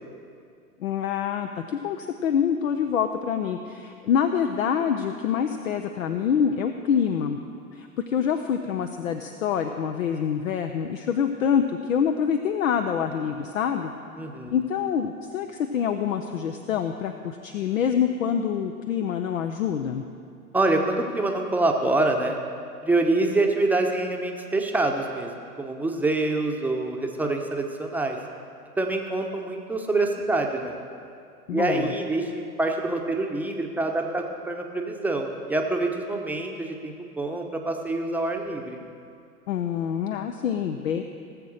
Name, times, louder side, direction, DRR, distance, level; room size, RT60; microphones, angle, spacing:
voice 1, 0.8-7.4 7.7-13.9 14.5-20.0 31.5-31.9 39.5-41.0, left 8 dB, 60° left, 6 dB, 0.8 m, -26 dB
voice 2, 14.2-14.6 20.5-22.4 22.8-28.2 28.8-30.8 31.5-38.8, right 2 dB, 5° right, 2 dB, 0.9 m, -26 dB
18.0 x 7.4 x 6.5 m, 2.4 s
figure-of-eight pair, 100°, 46 cm